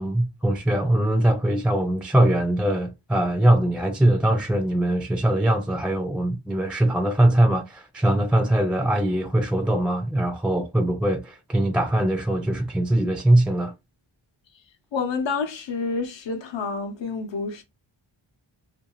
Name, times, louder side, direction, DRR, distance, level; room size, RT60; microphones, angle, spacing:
voice 1, 0.0-13.7, right 1 dB, ahead, 0.4 m, -22 dB
voice 2, 14.9-17.6, left 4 dB, 65° left, 0.7 m, -28 dB
2.6 x 2.2 x 3.0 m
wide cardioid pair, 90°, 48 cm